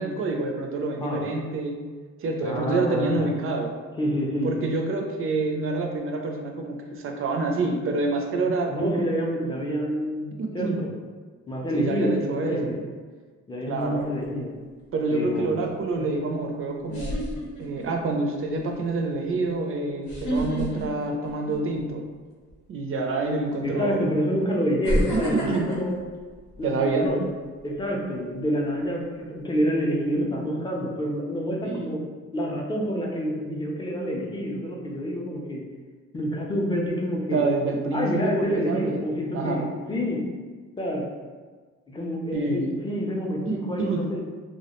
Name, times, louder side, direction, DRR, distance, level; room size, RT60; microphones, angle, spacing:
voice 1, 0.0-1.9 2.2-3.8 4.4-9.1 10.4-10.9 11.7-12.8 13.7-14.0 14.9-17.2 17.6-22.1 22.7-24.0 25.1-25.8 26.6-27.1 30.2-30.4 31.6-32.0 37.3-39.0 39.3-39.7 42.3-42.8 43.4-44.2, right 3 dB, 45° right, 2 dB, 0.4 m, -27 dB
voice 2, 2.4-3.3 4.0-4.5 8.7-10.3 10.5-10.9 11.5-12.8 13.5-14.5 15.1-15.6 16.0-16.1 23.6-25.9 26.6-27.3 27.6-32.0 32.3-35.6 36.1-37.4 37.9-40.2 40.8-41.1 41.9-44.2, equal, 15° left, -2 dB, 0.5 m, -27 dB
sound 1, 13.8-14.3 16.2-16.3 16.9-18.0 18.5-18.7 20.0-21.9 22.3-22.5 23.5-23.6 24.8-27.1 27.5-27.8, equal, 80° left, 0.7 m, -29 dB
2.3 x 2.1 x 2.9 m, 1.5 s
cardioid pair, 90°, 30 cm